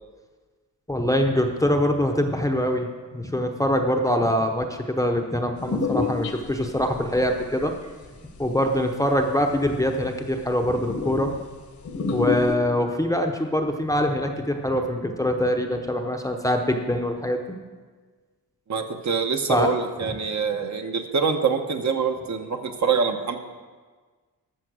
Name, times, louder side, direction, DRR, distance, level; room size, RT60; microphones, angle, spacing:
voice 1, 0.9-7.7 8.4-11.3 12.1-17.4 19.5-19.7 20.0-20.1, equal, 10° left, 3 dB, 0.7 m, -24 dB
sound 1, 5.6-7.3 7.6-8.9 9.6-9.7 10.0-10.1 10.3-10.4 10.8-11.4 11.9-12.6, left 4 dB, 55° left, 1.1 m, -28 dB
voice 2, 18.7-23.4, right 5 dB, 50° right, 5 dB, 1.0 m, -25 dB
13.0 x 6.9 x 6.2 m, 1.4 s
wide cardioid pair, 150°, 36 cm